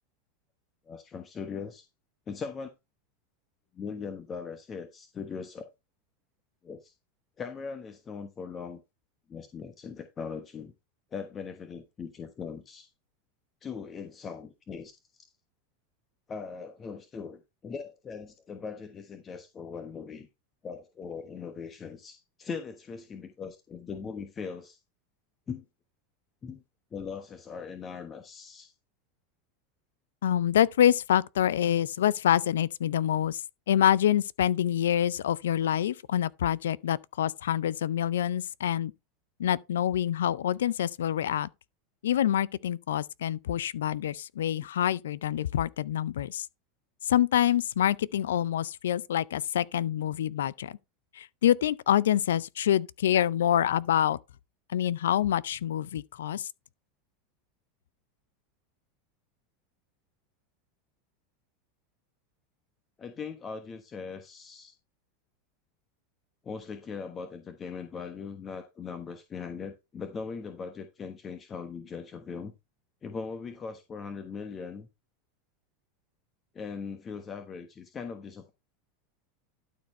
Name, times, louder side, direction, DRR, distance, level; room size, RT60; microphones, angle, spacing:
voice 1, 0.9-1.9 2.3-2.7 3.7-5.6 6.6-6.9 7.4-8.8 9.3-10.7 11.1-12.9 13.6-14.9 16.3-20.3 20.6-24.8 25.5-25.7 26.4-26.6 26.9-28.7 63.0-64.7 66.4-72.5 73.0-74.9 76.5-78.5, left 5 dB, 30° left, 1.3 m, -40 dB
voice 2, 30.2-33.4 33.7-38.9 39.4-41.5 42.0-46.5 47.0-50.8 51.1-54.2 54.7-56.5, left 10 dB, 80° left, 0.4 m, -26 dB
12.0 x 4.4 x 4.2 m
hypercardioid pair, 95°, 0 cm